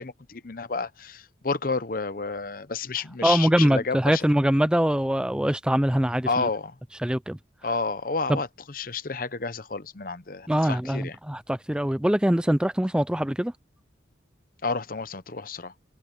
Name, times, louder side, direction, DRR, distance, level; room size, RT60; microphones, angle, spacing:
voice 1, 0.0-4.3 6.3-6.8 7.6-11.2 14.6-15.7, left 4 dB, 50° left, 0.8 m, -30 dB
voice 2, 3.2-6.5 7.0-7.4 8.3-8.4 10.5-13.5, equal, 5° right, 0.4 m, -23 dB
head